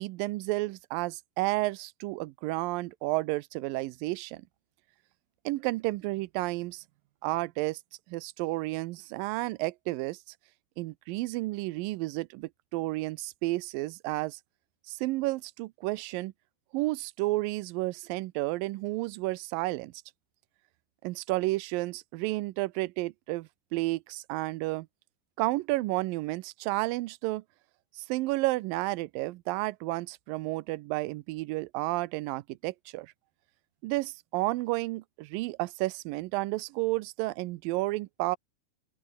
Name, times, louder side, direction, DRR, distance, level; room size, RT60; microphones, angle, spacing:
voice 1, 0.0-4.4 5.5-6.8 7.2-7.8 8.1-10.2 10.8-14.4 14.9-16.3 16.7-19.9 21.0-24.9 25.4-27.4 28.0-33.1 33.8-38.4, right 20 dB, 75° right, 2.3 m, -31 dB
open air
omnidirectional pair, 4.4 m